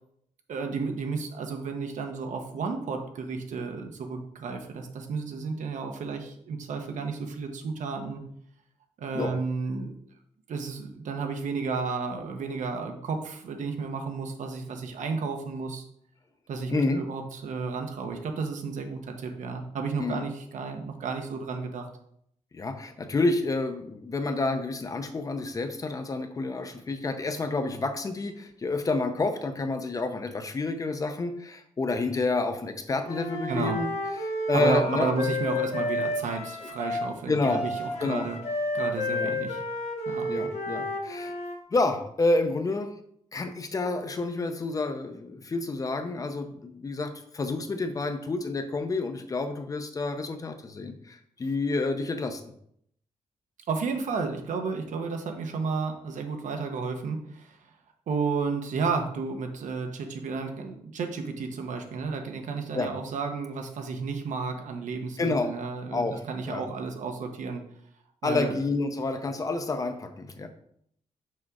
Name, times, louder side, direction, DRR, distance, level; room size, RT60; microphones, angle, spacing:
voice 1, 0.5-8.2 9.0-9.9 10.5-15.8 16.5-21.9 33.5-33.8 34.5-38.4 38.7-39.6 40.1-40.3 53.7-57.6 58.1-67.6 68.2-68.6, right 4 dB, 75° right, 5 dB, 1.1 m, -32 dB
voice 2, 16.7-17.0 20.0-20.2 22.5-33.9 34.2-35.1 37.3-37.6 38.0-38.3 39.1-39.3 40.3-41.3 41.7-42.9 43.3-52.4 62.7-62.9 65.2-65.5 65.9-66.7 68.2-70.5, left 3 dB, 25° left, 7 dB, 0.6 m, -29 dB
Wind instrument woodwind instrument, 33.1-41.6, left 2 dB, 55° left, 1.1 m, -31 dB
6.4 x 3.7 x 6.0 m, 0.69 s
wide cardioid pair, 175°, 13 cm